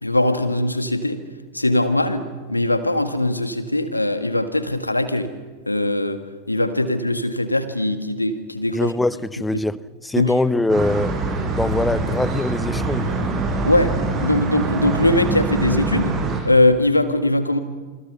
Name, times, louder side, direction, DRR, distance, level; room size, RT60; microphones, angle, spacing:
voice 1, 0.0-1.2 1.5-5.3 5.7-8.9 10.1-10.4 13.6-16.2 16.4-17.6, left 1 dB, 85° left, 1.8 m, -21 dB
voice 2, 8.7-9.8 10.0-11.1 11.5-13.1, left 2 dB, 5° left, 0.9 m, -22 dB
sound 1, 10.7-16.4, right 3 dB, 30° right, 7.2 m, -24 dB
29.0 x 25.5 x 6.9 m
figure-of-eight pair, 90°, 0 cm